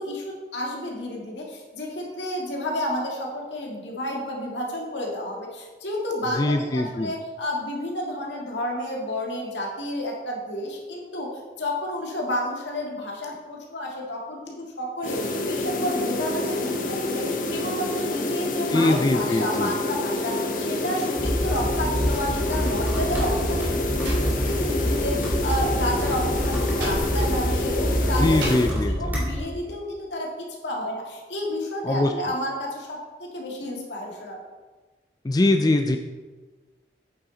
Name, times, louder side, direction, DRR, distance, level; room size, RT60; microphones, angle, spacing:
voice 1, 0.0-11.3 11.6-34.4, left 1 dB, 80° left, -1 dB, 1.9 m, -31 dB
voice 2, 6.4-7.1 18.7-19.7 28.2-28.9 31.8-32.1 35.2-36.0, left 2 dB, 20° left, 5 dB, 0.3 m, -22 dB
sound 1, 15.0-28.7, left 2 dB, 45° left, 0.8 m, -28 dB
sound 2, 21.2-29.4, equal, 10° right, 2.5 m, -26 dB
Slam, 23.3-25.1 25.3-28.8, right 1 dB, 75° right, 2.7 m, -37 dB
8.8 x 6.9 x 3.9 m, 1.3 s
head